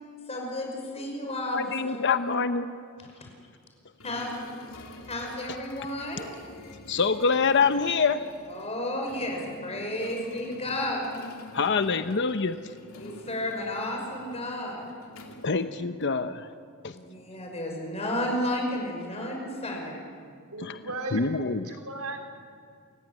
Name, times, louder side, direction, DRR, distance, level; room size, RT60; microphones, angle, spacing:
voice 1, 0.3-2.4 3.0-3.1 4.0-4.3 5.1-6.3 8.5-11.0 12.9-14.8 16.9-20.1, left 1 dB, 30° left, 1 dB, 5.6 m, -32 dB
voice 2, 1.5-2.7 6.9-8.2 11.5-12.6 15.4-16.5 16.8-16.9 20.6-20.8 21.1-21.7, left 5 dB, 55° left, 10 dB, 0.8 m, -25 dB
sound 1, 4.0-16.3, left 2 dB, 70° left, 2.7 m, -47 dB
voice 3, 20.5-22.3, right 2 dB, 85° right, 3 dB, 3.7 m, -36 dB
28.5 x 15.5 x 9.7 m, 2.1 s
head